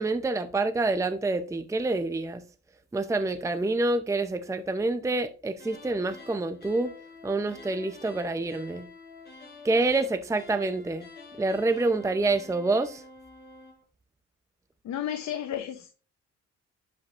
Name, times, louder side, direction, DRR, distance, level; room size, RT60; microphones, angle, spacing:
voice 1, 0.0-2.4 2.9-6.9 7.2-8.9 9.6-11.1 11.4-13.0, right 2 dB, 10° right, 0.6 m, -27 dB
sound 1, 5.5-13.8, left 3 dB, 35° left, 4.4 m, -48 dB
voice 2, 14.8-16.0, left 10 dB, 70° left, 0.9 m, -33 dB
11.0 x 5.2 x 2.5 m
cardioid pair, 90°, 30 cm